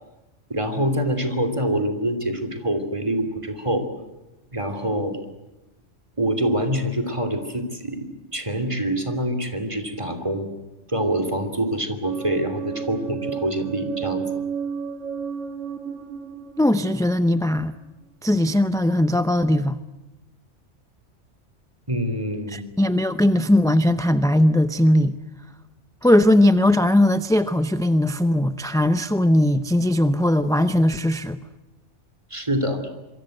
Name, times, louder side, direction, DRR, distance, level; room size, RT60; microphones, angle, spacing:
voice 1, 0.5-3.9 4.5-5.2 6.2-10.5 10.9-14.2 21.9-22.7 32.3-32.8, right 1 dB, 25° right, 3.0 m, -25 dB
sound 1, 12.0-17.8, right 7 dB, 90° right, 2.1 m, -32 dB
voice 2, 16.6-17.8 18.2-19.8 22.5-25.2 26.0-31.4, left 1 dB, 5° left, 0.5 m, -19 dB
27.0 x 23.5 x 7.9 m
omnidirectional pair, 1.2 m